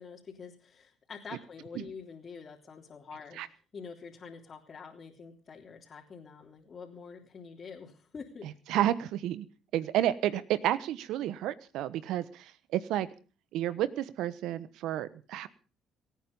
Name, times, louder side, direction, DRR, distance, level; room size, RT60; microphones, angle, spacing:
voice 1, 0.0-3.4 3.7-8.5, left 5 dB, 45° left, -2 dB, 3.5 m, -46 dB
voice 2, 8.7-9.5 9.7-13.1 13.5-15.5, right 12 dB, 75° right, 16 dB, 1.1 m, -31 dB
26.0 x 9.4 x 5.4 m, 0.38 s
supercardioid pair, 65°, 0 cm